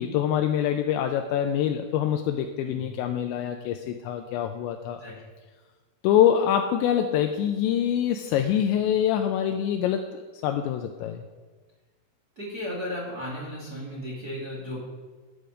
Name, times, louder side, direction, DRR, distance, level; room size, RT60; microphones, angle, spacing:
voice 1, 0.0-5.0 6.0-11.2, left 10 dB, 85° left, 5 dB, 2.7 m, -25 dB
voice 2, 12.3-14.9, left 1 dB, 40° right, -4 dB, 1.4 m, -35 dB
12.5 x 8.1 x 5.0 m, 1.4 s
omnidirectional pair, 5.5 m